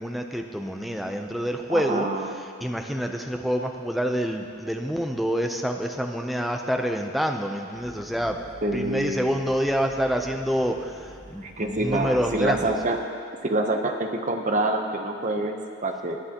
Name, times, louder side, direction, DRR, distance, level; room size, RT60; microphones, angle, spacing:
voice 1, 0.0-2.1 2.3-8.4 8.7-12.7, equal, ahead, 3 dB, 0.6 m, -27 dB
voice 2, 1.7-2.4 8.6-9.4 11.4-13.0 13.4-16.2, right 2 dB, 35° right, 4 dB, 0.8 m, -27 dB
sound 1, 7.7-13.0, equal, 30° left, 2.6 m, -47 dB
19.5 x 10.0 x 2.9 m, 2.4 s
head